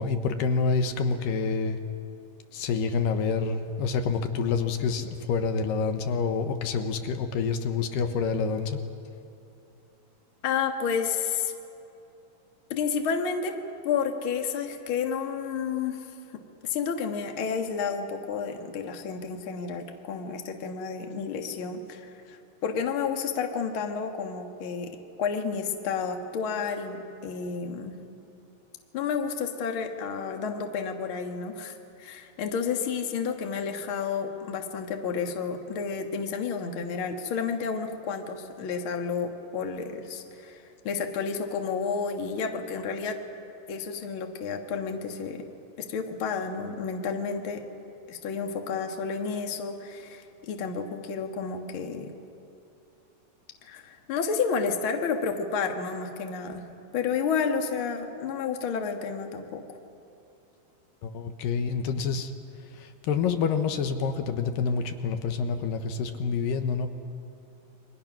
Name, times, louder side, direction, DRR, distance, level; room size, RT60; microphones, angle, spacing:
voice 1, 0.0-1.8 2.5-8.8 61.0-62.3 62.7-66.9, left 5 dB, 80° left, 7 dB, 2.6 m, -27 dB
voice 2, 10.4-11.5 12.7-13.6 13.8-16.2 16.6-24.9 25.2-28.0 28.9-43.2 43.7-45.4 45.9-47.6 48.1-52.1 53.6-56.7 56.9-59.6, left 6 dB, 50° left, 4 dB, 1.8 m, -31 dB
29.0 x 23.0 x 6.0 m, 2.7 s
omnidirectional pair, 4.0 m